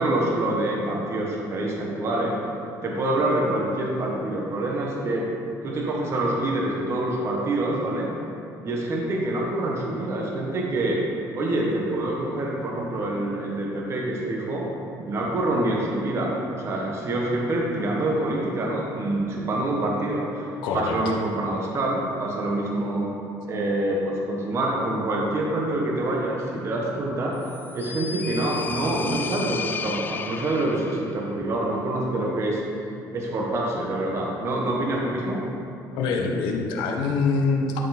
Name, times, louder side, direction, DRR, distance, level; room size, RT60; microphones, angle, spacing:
voice 1, 0.0-2.4 2.8-5.2 5.6-8.1 8.6-11.0 11.3-14.7 15.0-16.3 16.6-20.5 20.7-23.0 23.4-27.3 27.7-32.6 33.1-35.4, right 1 dB, 35° right, -2 dB, 1.2 m, -26 dB
voice 2, 20.6-20.9 36.0-37.8, left 4 dB, 85° left, 1 dB, 1.1 m, -24 dB
sound 1, 27.4-31.2, left 5 dB, 25° left, 0.4 m, -33 dB
12.0 x 4.6 x 4.2 m, 2.7 s
cardioid pair, 140°, 8 cm